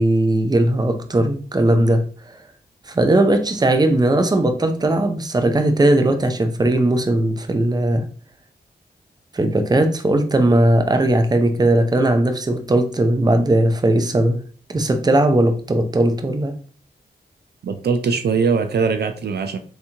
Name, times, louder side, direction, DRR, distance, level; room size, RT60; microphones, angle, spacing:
voice 1, 0.0-2.0 2.9-8.0 9.3-14.4 14.7-16.5, right 1 dB, 20° right, 7 dB, 0.6 m, -18 dB
voice 2, 17.6-19.6, right 5 dB, 70° right, 7 dB, 0.4 m, -21 dB
3.4 x 2.9 x 2.8 m, 0.42 s
cardioid pair, 75°, 18 cm